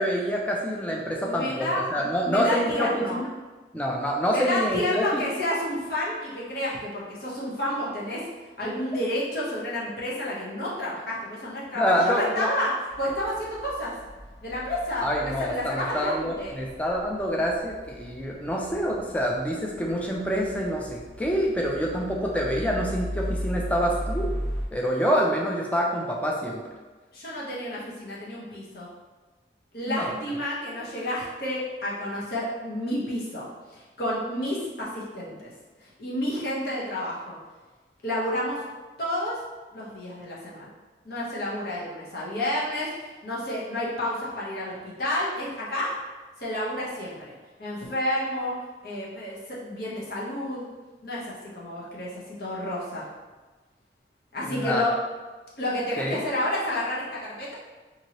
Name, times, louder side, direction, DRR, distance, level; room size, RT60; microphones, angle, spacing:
voice 1, 0.0-3.3 3.7-5.2 11.8-12.5 15.0-24.3 24.7-26.6 29.9-30.1 54.4-55.0 56.0-56.2, equal, 10° left, -2 dB, 0.3 m, -26 dB
voice 2, 1.2-3.2 4.3-8.3 8.6-13.9 14.4-16.5 27.1-28.9 29.7-33.4 33.7-35.5 36.0-37.4 38.0-38.6 39.0-39.4 39.7-40.7 41.0-42.9 43.2-45.9 46.4-47.2 47.6-48.5 48.8-50.7 51.0-53.1 54.3-54.9 55.6-57.5, left 1 dB, 55° left, -6 dB, 0.8 m, -30 dB
sound 1, 12.9-24.7, equal, 85° left, 1.0 m, -37 dB
2.9 x 2.6 x 2.9 m, 1.3 s
head